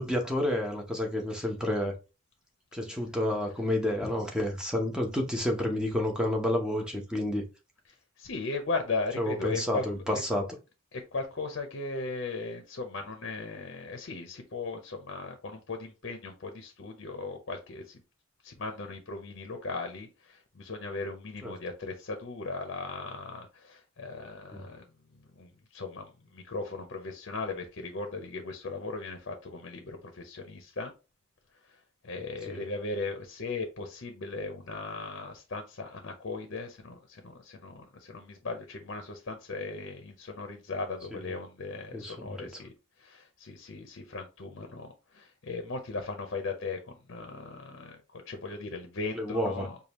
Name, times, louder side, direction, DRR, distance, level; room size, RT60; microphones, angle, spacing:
voice 1, 0.0-1.9 2.7-7.5 9.2-10.4 21.4-21.5 24.5-24.7 32.5-32.6 41.1-41.2 41.9-42.4 49.1-49.7, left 1 dB, 5° right, 0.8 m, -30 dB
voice 2, 8.2-10.2 10.9-18.0 18.4-24.8 25.1-30.9 32.0-42.7 43.0-49.8, left 3 dB, 60° left, 0.7 m, -37 dB
5.0 x 2.3 x 2.9 m
head